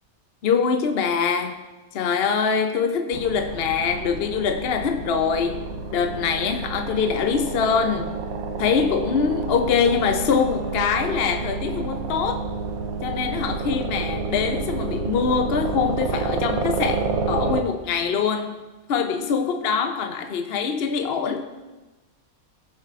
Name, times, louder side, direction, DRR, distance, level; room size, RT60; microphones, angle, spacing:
voice 1, 0.4-1.6 1.9-5.6 5.9-8.1 8.6-12.4 13.0-18.6 18.9-21.5, left 6 dB, 55° left, 0.7 m, -23 dB
sound 1, 3.1-17.6, right 4 dB, 75° right, 1.2 m, -29 dB
19.5 x 7.4 x 2.4 m
omnidirectional pair, 1.5 m